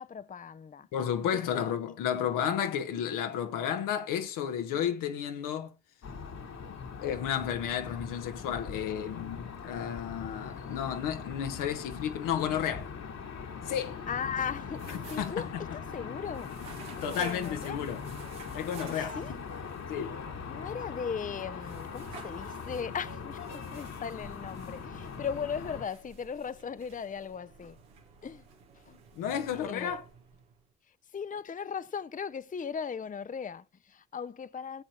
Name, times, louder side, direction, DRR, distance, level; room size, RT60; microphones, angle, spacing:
voice 1, 0.0-0.9 1.2-1.6 10.6-10.7 14.1-17.8 18.9-19.3 20.5-27.8 28.2-28.4 28.9-29.0 29.5-30.0 31.1-34.8, left 6 dB, 25° left, 0.6 m, -38 dB
voice 2, 0.9-5.7 7.0-12.9 13.7-14.0 15.2-15.6 17.0-18.0 18.5-19.1 19.9-20.2 28.9-30.0, left 9 dB, 75° left, 1.2 m, -32 dB
sound 1, 6.0-25.8, left 5 dB, 55° left, 1.8 m, -41 dB
sound 2, 14.6-30.7, right 5 dB, 85° right, 1.7 m, -52 dB
17.0 x 7.6 x 2.9 m
hypercardioid pair, 40°, 32 cm